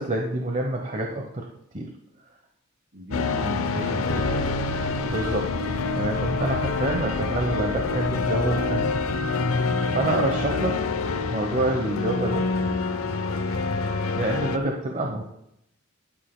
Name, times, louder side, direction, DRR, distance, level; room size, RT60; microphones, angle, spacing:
voice 1, 0.0-1.5 1.7-1.9 5.0-5.5 6.0-9.0 9.5-9.7 9.9-10.8 11.3-12.4 14.2-15.2, right 2 dB, 35° right, 2 dB, 0.9 m, -27 dB
voice 2, 2.9-4.4 7.2-7.5 10.9-11.2 15.0-15.2, equal, 60° right, -1 dB, 2.8 m, -37 dB
sound 1, 3.1-14.6, left 3 dB, 80° left, 0.7 m, -26 dB
sound 2, 4.1-9.2, left 3 dB, 45° left, 0.4 m, -39 dB
11.0 x 11.0 x 2.2 m, 0.78 s
head